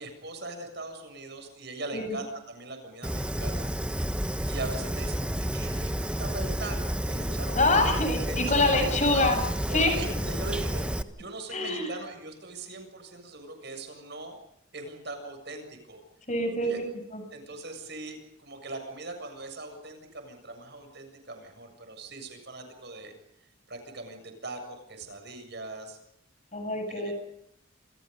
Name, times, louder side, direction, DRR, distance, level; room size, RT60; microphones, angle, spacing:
voice 1, 0.0-3.7 4.5-9.3 9.7-14.4 14.7-16.0 16.6-16.8 17.3-23.1 23.7-26.0 26.9-27.1, right 2 dB, 55° right, 6 dB, 7.2 m, -40 dB
Fire, 3.0-11.0, equal, 5° right, 1.2 m, -30 dB
voice 2, 7.5-9.4 9.7-10.0 11.5-11.9 16.3-16.8 17.1-17.2 26.5-27.1, left 2 dB, 35° left, 6 dB, 7.5 m, -25 dB
29.5 x 27.0 x 5.4 m, 0.76 s
head